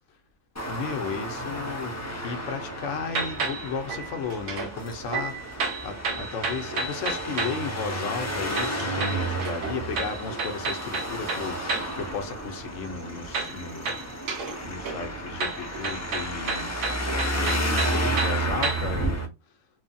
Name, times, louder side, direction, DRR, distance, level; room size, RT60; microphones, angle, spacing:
voice 1, 0.6-14.1 14.6-16.7 17.3-19.6, left 5 dB, 80° left, 1.0 m, -35 dB
Traffic noise roadway noise, 0.6-19.3, right 1 dB, 25° left, 0.3 m, -32 dB
sound 1, 3.1-4.7 5.1-7.7 8.5-12.0 13.3-14.6 14.9-19.0, right 4 dB, 80° right, 1.0 m, -32 dB
3.1 x 2.0 x 2.6 m
omnidirectional pair, 1.3 m